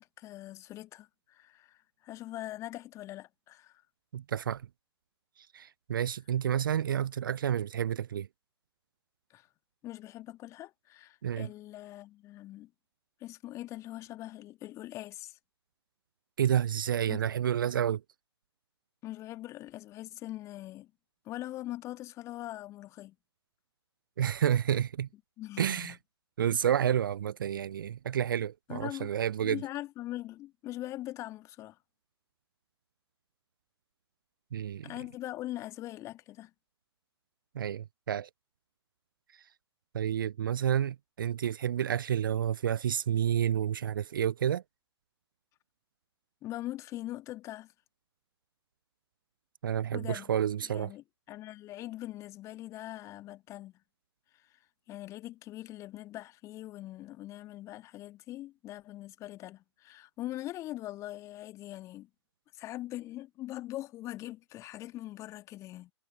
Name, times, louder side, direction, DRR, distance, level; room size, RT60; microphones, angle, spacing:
voice 1, 0.0-3.8 9.3-9.5 9.8-12.7 13.2-15.4 17.1-17.2 19.0-20.9 21.3-23.2 25.4-26.0 28.7-29.1 29.4-31.8 34.8-36.5 46.4-47.7 49.9-50.3 50.6-53.7 54.4-54.5 54.9-62.1 62.5-65.9, left 15 dB, 20° left, 1.9 m, -42 dB
voice 2, 4.1-4.6 5.5-8.3 11.2-11.5 16.4-18.0 24.2-25.1 25.6-26.0 26.4-29.6 34.5-34.9 37.5-38.3 39.9-44.6 49.6-50.9, right 9 dB, 50° right, 0.5 m, -30 dB
figure-of-eight pair, 120°, 14 cm